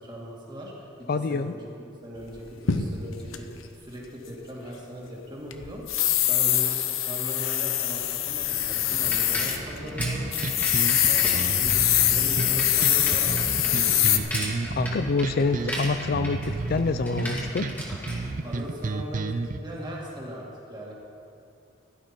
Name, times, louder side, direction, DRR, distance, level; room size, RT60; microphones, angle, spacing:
voice 1, 0.0-1.7 2.0-5.8 6.3-10.2 11.0-14.3 18.4-20.9, equal, 20° right, -3 dB, 2.3 m, -39 dB
voice 2, 1.1-1.5 14.8-17.7, left 4 dB, 45° left, 11 dB, 0.4 m, -26 dB
sound 1, 2.3-3.4 5.5-9.6 9.9-10.0 10.3-14.2, left 11 dB, 85° left, 0.8 m, -24 dB
Bicycle, 8.1-19.0, equal, 10° left, 2.1 m, -36 dB
sound 2, 10.0-19.6, right 3 dB, 40° right, 0.4 m, -32 dB
15.5 x 12.0 x 4.5 m, 2.5 s
head